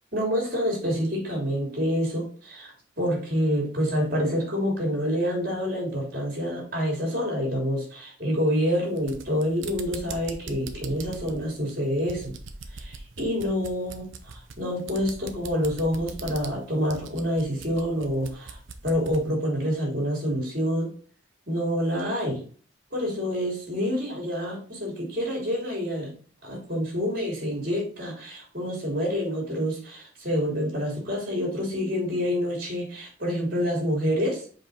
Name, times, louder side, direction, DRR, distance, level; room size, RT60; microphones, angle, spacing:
voice 1, 0.1-12.3 12.7-18.6 18.8-20.9 21.5-22.4 22.9-26.1 26.4-34.5, equal, 50° right, -1 dB, 3.2 m, -27 dB
sound 1, 8.9-19.3, right 4 dB, 75° right, 0.8 m, -42 dB
5.3 x 4.8 x 4.1 m, 0.42 s
head